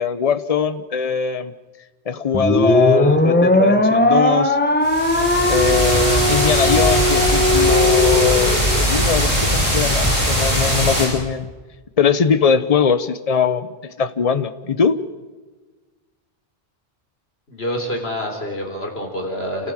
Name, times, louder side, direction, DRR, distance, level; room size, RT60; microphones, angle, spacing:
voice 1, 0.0-1.5 2.1-4.6 5.5-11.5 12.0-15.0, left 6 dB, 35° left, 12 dB, 0.9 m, -21 dB
sound 1, 2.3-8.8, left 1 dB, 10° left, 1.5 m, -18 dB
sound 2, 4.8-11.1, equal, 60° right, 7.9 m, -19 dB
voice 2, 17.5-19.7, equal, 65° left, 2 dB, 4.0 m, -27 dB
28.5 x 14.5 x 7.6 m, 1.3 s
omnidirectional pair, 1.1 m